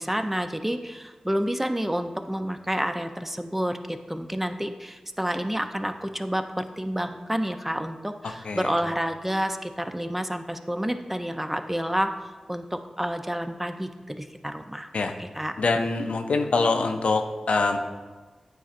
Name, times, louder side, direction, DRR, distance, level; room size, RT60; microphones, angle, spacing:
voice 1, 0.0-12.1 12.5-14.9 15.2-15.5, equal, 10° right, 8 dB, 0.4 m, -29 dB
voice 2, 8.2-8.7 14.9-15.1 15.6-17.8, left 3 dB, 85° left, 6 dB, 0.4 m, -24 dB
9.2 x 4.1 x 2.5 m, 1.3 s
cardioid pair, 40°, 2 cm